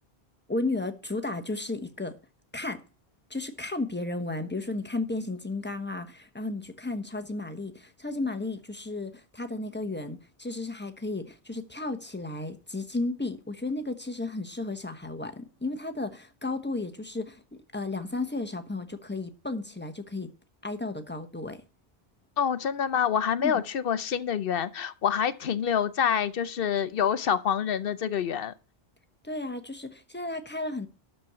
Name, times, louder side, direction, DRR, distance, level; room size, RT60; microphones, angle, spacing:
voice 1, 0.5-2.2 2.5-2.8 3.3-20.3 20.6-21.6 23.4-23.6 29.2-30.9, left 2 dB, 10° left, 1.0 m, -33 dB
voice 2, 22.4-28.5, left 8 dB, 65° left, 0.8 m, -27 dB
12.5 x 4.5 x 6.7 m
omnidirectional pair, 1.1 m